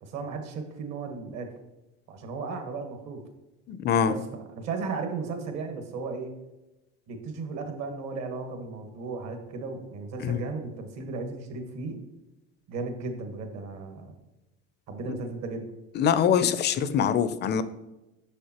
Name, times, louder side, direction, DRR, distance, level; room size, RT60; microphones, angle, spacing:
voice 1, 0.0-1.5 2.1-3.2 4.0-6.3 7.1-12.0 12.7-14.2 14.9-15.7, right 4 dB, 60° right, 5 dB, 1.3 m, -35 dB
voice 2, 3.7-4.1 10.2-10.4 15.9-17.6, left 8 dB, 35° left, 13 dB, 0.4 m, -24 dB
6.6 x 6.1 x 2.9 m, 1.0 s
cardioid pair, 125°, 30 cm